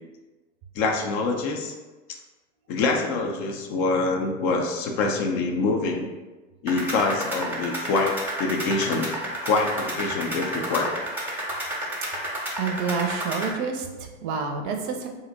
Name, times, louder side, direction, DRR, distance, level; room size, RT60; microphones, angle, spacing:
voice 1, 0.8-1.7 2.7-6.1 6.6-9.1 9.4-10.9, left 3 dB, 45° left, 3 dB, 0.5 m, -25 dB
sound 1, 6.7-13.5, right 1 dB, 5° right, 0.8 m, -31 dB
voice 2, 12.6-15.1, right 5 dB, 45° right, 3 dB, 0.5 m, -28 dB
2.6 x 2.0 x 3.9 m, 1.2 s
figure-of-eight pair, 85°, 37 cm